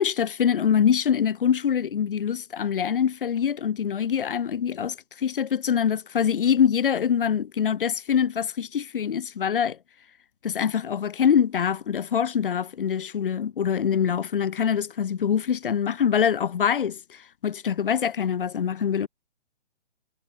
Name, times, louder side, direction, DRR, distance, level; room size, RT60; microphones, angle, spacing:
voice 1, 0.0-9.8 10.4-19.1, left 8 dB, 50° left, 0.4 m, -24 dB
figure-of-eight pair, 130°, 35 cm